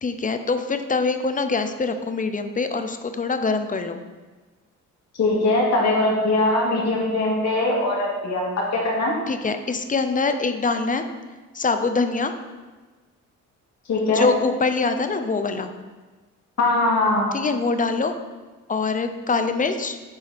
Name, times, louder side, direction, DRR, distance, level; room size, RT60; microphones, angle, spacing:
voice 1, 0.0-4.0 9.3-11.1 11.5-12.3 14.1-15.7 17.3-18.1 18.7-20.0, left 4 dB, 25° left, 8 dB, 0.6 m, -24 dB
voice 2, 5.2-9.1 13.9-14.3 16.6-17.3, left 2 dB, 60° left, -3 dB, 2.5 m, -21 dB
9.8 x 4.1 x 4.2 m, 1.3 s
cardioid pair, 90°, 30 cm